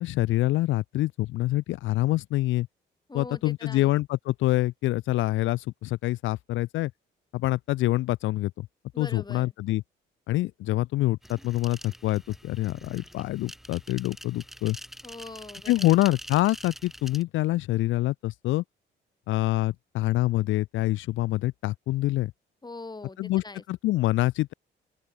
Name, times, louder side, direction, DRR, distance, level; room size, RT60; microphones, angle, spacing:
voice 1, 0.0-2.7 3.1-6.9 7.3-8.5 9.0-9.8 10.3-14.8 15.7-18.6 19.3-22.3 23.2-24.5, left 17 dB, 80° left, 0.4 m, -26 dB
voice 2, 3.1-3.9 8.9-9.5 15.0-15.9 22.6-23.6, left 3 dB, 20° left, 7.0 m, -42 dB
sound 1, 11.2-17.2, equal, ahead, 1.1 m, -45 dB
open air
cardioid pair, 90°, 20 cm